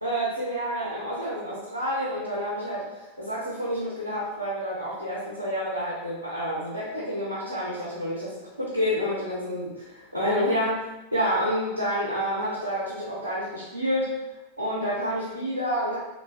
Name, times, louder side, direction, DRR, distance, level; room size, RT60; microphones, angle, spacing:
voice 1, 0.0-14.1 14.6-16.0, equal, 90° right, -6 dB, 0.5 m, -29 dB
3.1 x 2.1 x 2.3 m, 1.0 s
figure-of-eight pair, 90°, 0 cm